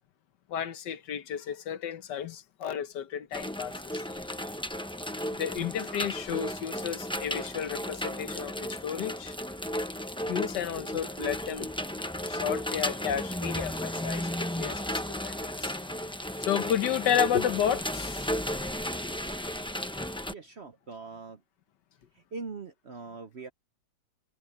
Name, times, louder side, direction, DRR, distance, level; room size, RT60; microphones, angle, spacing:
voice 1, 0.5-4.3 5.4-9.3 10.3-11.7 12.2-15.8 16.4-18.4, left 9 dB, 70° left, 1.5 m, -32 dB
sound 1, 3.3-20.3, equal, 5° left, 0.4 m, -34 dB
voice 2, 20.3-21.4 22.1-23.5, right 4 dB, 45° right, 0.9 m, -42 dB
omnidirectional pair, 2.0 m